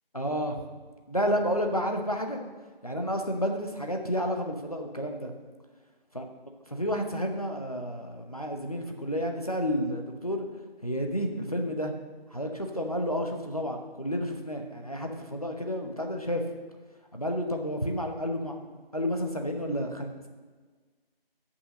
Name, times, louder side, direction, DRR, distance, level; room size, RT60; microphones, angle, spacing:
voice 1, 0.1-0.7 1.1-2.4 2.8-5.3 6.1-6.2 6.7-10.5 10.8-11.9 12.3-16.4 17.1-20.3, equal, 40° left, 3 dB, 0.9 m, -31 dB
8.3 x 5.7 x 6.4 m, 1.4 s
figure-of-eight pair, 180°, 30 cm